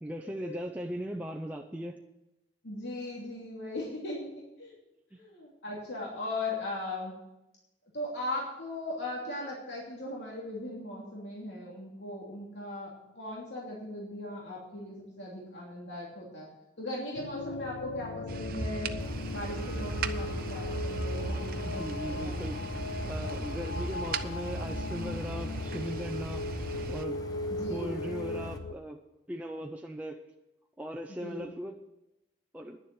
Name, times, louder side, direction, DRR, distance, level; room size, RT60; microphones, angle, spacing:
voice 1, 0.0-2.0 21.7-22.6 23.0-26.4 26.9-27.2 27.7-29.0 29.3-30.2 30.8-31.8 32.5-32.8, equal, 10° right, 1 dB, 0.6 m, -38 dB
voice 2, 2.6-4.3 4.6-4.7 5.1-7.1 7.9-16.5 16.8-18.9 19.3-22.3 27.5-28.0 31.1-31.5, left 1 dB, 75° left, -4 dB, 2.9 m, -38 dB
sound 1, 17.1-28.8, left 3 dB, 90° left, 0.5 m, -38 dB
sound 2, 18.3-27.0, right 3 dB, 55° right, 0.7 m, -37 dB
Idling, 19.0-28.6, left 1 dB, 20° left, 1.1 m, -44 dB
10.5 x 7.2 x 9.5 m, 0.93 s
head